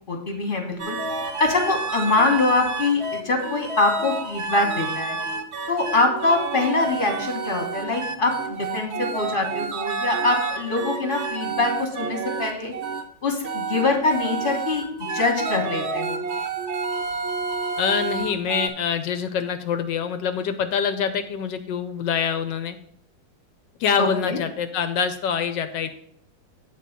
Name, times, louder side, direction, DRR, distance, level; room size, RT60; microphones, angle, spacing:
voice 1, 0.1-1.0 1.4-5.2 5.7-12.7 13.2-14.8 15.1-16.2 24.0-24.4, left 3 dB, 30° left, 3 dB, 1.4 m, -23 dB
sound 1, 0.8-13.0 13.4-18.7, right 4 dB, 55° right, 0.7 m, -29 dB
voice 2, 17.8-22.8 23.8-25.9, left 7 dB, 70° left, 9 dB, 1.2 m, -25 dB
8.4 x 3.8 x 6.6 m, 0.66 s
omnidirectional pair, 2.2 m